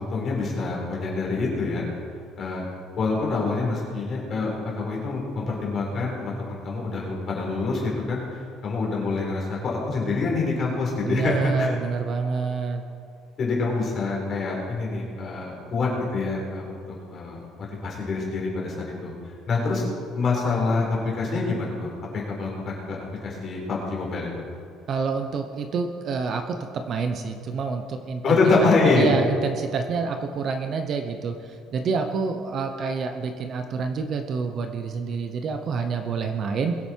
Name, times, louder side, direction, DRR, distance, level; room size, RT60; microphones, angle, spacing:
voice 1, 0.0-1.9 2.4-2.6 3.0-11.7 13.4-19.1 19.5-19.8 20.1-23.0 23.2-24.4 28.2-29.2, left 3 dB, 35° left, -3 dB, 4.1 m, -26 dB
voice 2, 11.0-12.8 24.9-36.8, right 5 dB, 35° right, 6 dB, 0.8 m, -28 dB
22.0 x 8.2 x 4.6 m, 2.3 s
cardioid pair, 170°, 0 cm